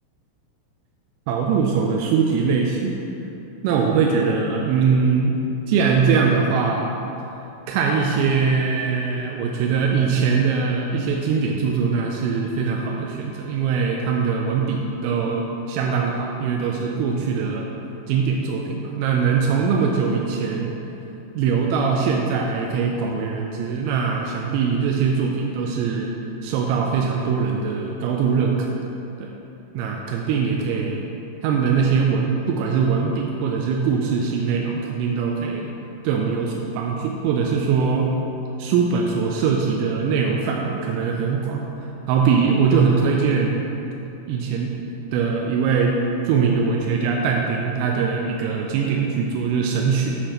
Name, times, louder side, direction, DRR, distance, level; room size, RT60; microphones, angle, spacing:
voice 1, 1.3-3.0 3.6-5.4 5.7-6.9 7.7-17.7 18.1-20.8 21.3-26.1 26.4-28.8 29.2-29.3 29.7-31.0 31.4-35.7 36.0-38.1 38.6-43.7 44.3-44.7 45.1-46.0 46.2-50.2, right 5 dB, 85° right, 0 dB, 3.2 m, -22 dB
12.5 x 4.4 x 3.0 m, 2.9 s
omnidirectional pair, 5.8 m